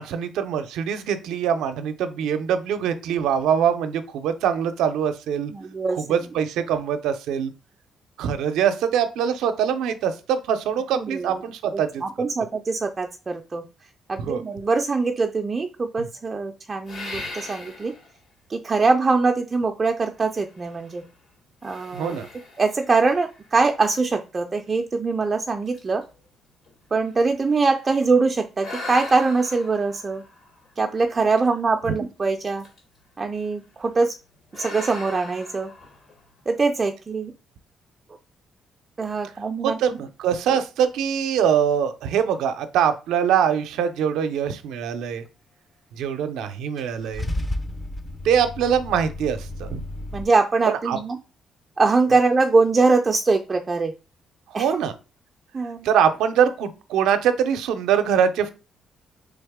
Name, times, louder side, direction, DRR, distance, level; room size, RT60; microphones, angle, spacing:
voice 1, 0.0-5.5 6.1-7.5 8.2-12.0 14.2-14.4 16.0-16.1 21.9-22.3 39.6-45.2 45.9-47.3 48.2-49.8 50.7-51.0 54.5-54.9 55.8-58.5, right 8 dB, 85° right, 9 dB, 0.5 m, -23 dB
voice 2, 5.5-6.2 11.0-11.4 11.7-13.6 14.1-17.9 18.5-21.0 21.6-22.2 22.6-26.0 26.9-30.2 30.8-32.6 33.2-34.1 34.5-35.7 36.5-37.3 39.0-39.8 50.1-51.2 51.8-53.9 54.5-54.8 55.5-55.9, right 4 dB, 30° right, 4 dB, 0.4 m, -23 dB
sound 1, 16.9-18.2 18.8-18.9 20.2-21.1 21.6-24.0 24.7-24.8 25.3-25.4 25.7-28.0 28.6-31.3 32.5-33.0 33.3-33.6 34.5-36.4, left 2 dB, 70° left, 2.4 m, -40 dB
Car / Engine starting / Idling, 46.8-50.2, left 1 dB, 20° left, 0.6 m, -32 dB
3.9 x 3.5 x 3.5 m, 0.32 s
cardioid pair, 90°, 0 cm